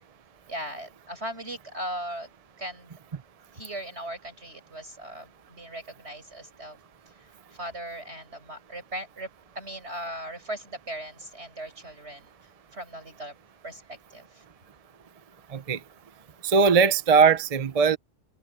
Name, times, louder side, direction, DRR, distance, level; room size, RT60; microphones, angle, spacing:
voice 1, 0.5-2.3 2.6-2.9 3.5-6.8 7.1-9.3 9.5-12.3 12.7-13.4 13.6-14.4, right 1 dB, 80° right, 8.2 m, -38 dB
voice 2, 15.5-15.8 16.4-18.0, right 5 dB, 40° right, 0.7 m, -20 dB
omnidirectional pair, 1.1 m